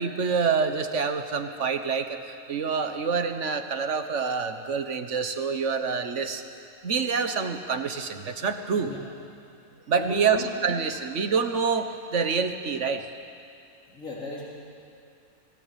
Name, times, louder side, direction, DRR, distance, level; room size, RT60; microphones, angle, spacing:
voice 1, 0.0-6.4 6.8-8.9 9.9-13.1, right 5 dB, 65° right, 8 dB, 1.5 m, -27 dB
voice 2, 10.0-10.5 13.9-14.5, left 1 dB, 80° left, -5 dB, 4.0 m, -37 dB
22.5 x 16.5 x 9.2 m, 2.5 s
omnidirectional pair, 1.4 m